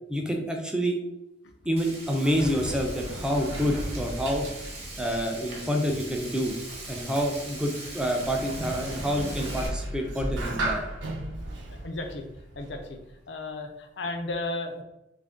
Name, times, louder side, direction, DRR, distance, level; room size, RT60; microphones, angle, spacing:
voice 1, 0.1-1.0 1.7-4.5 5.0-6.6 6.9-10.8, equal, 5° right, 2 dB, 0.4 m, -28 dB
Sliding door, 1.7-13.1, right 1 dB, 90° right, 0.7 m, -36 dB
Frying (food), 1.8-9.7, right 2 dB, 35° right, 0.9 m, -41 dB
voice 2, 11.7-12.3 12.6-13.0 13.3-14.8, left 2 dB, 65° left, 5 dB, 0.5 m, -34 dB
3.1 x 2.5 x 3.5 m, 0.90 s
head